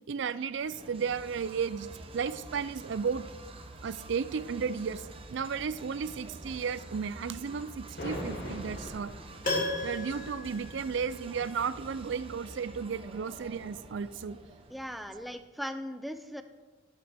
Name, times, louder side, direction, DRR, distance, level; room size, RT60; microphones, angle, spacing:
voice 1, 0.1-1.9 2.1-3.2 3.8-5.0 5.3-9.1 9.8-14.4, right 6 dB, 65° right, 15 dB, 0.4 m, -34 dB
sound 1, 0.5-15.2, right 2 dB, 30° right, 0.7 m, -48 dB
sound 2, 7.8-15.3, equal, 80° left, 3.8 m, -45 dB
Piano, 9.4-11.5 11.8-11.9, left 2 dB, 40° left, 2.8 m, -35 dB
voice 2, 14.7-16.4, equal, ahead, 8 dB, 0.4 m, -38 dB
12.5 x 8.9 x 3.5 m, 1.3 s
head